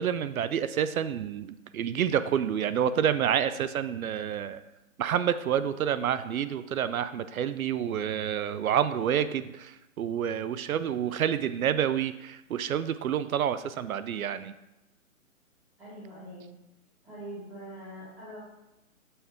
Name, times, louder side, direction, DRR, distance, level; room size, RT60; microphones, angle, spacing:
voice 1, 0.0-4.6 5.0-14.6, right 9 dB, 80° right, 13 dB, 0.5 m, -28 dB
voice 2, 15.8-16.5 17.0-18.4, right 1 dB, 5° right, -10 dB, 1.0 m, -43 dB
6.9 x 3.5 x 5.8 m, 0.95 s
hypercardioid pair, 170°, 42 cm